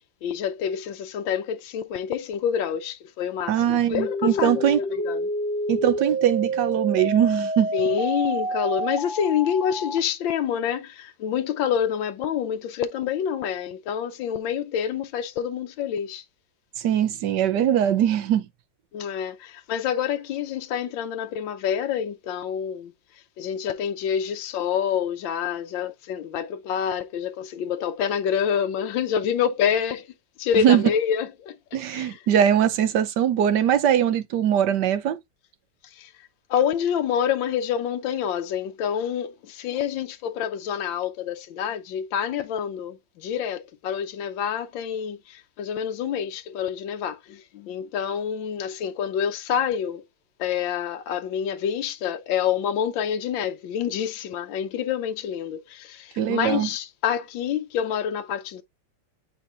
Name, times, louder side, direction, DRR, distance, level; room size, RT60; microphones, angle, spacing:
voice 1, 0.2-5.3 7.7-16.2 18.9-22.9 23.4-30.1 30.4-31.5 31.9-32.2 35.9-36.1 36.5-50.0 50.4-58.6, left 8 dB, 90° left, 1.5 m, -27 dB
voice 2, 3.5-4.8 5.7-7.7 16.8-18.5 30.6-30.8 31.7-35.2 56.2-56.7, right 10 dB, 70° right, 1.4 m, -21 dB
sound 1, 4.0-10.0, right 1 dB, 15° left, 0.8 m, -28 dB
8.1 x 4.5 x 2.6 m
omnidirectional pair, 2.0 m